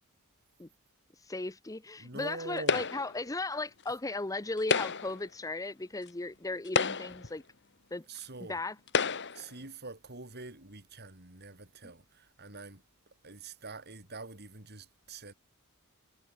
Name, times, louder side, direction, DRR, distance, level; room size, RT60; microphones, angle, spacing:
voice 1, 1.2-7.4 7.9-8.0 8.5-8.7, left 2 dB, 15° left, 0.8 m, -36 dB
voice 2, 2.0-2.9 8.1-8.6 9.3-15.3, right 3 dB, 50° right, 5.7 m, -45 dB
sound 1, 2.7-3.2 4.6-5.2 6.1-6.2 6.6-7.3 8.2-8.3 8.9-9.5, left 5 dB, 55° left, 2.7 m, -30 dB
head